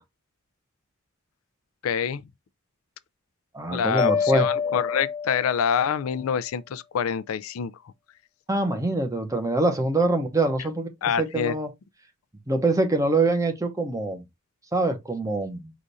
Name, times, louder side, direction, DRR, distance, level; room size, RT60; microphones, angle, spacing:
voice 1, 1.8-2.2 3.7-7.7 11.0-11.5, left 7 dB, 85° left, 0.4 m, -26 dB
voice 2, 3.5-4.4 8.5-10.9 11.2-11.7 12.5-14.2 14.7-15.7, right 2 dB, 15° right, 0.9 m, -24 dB
Mallet percussion, 4.0-6.0, left 6 dB, 25° left, 0.6 m, -27 dB
5.0 x 2.5 x 4.0 m
head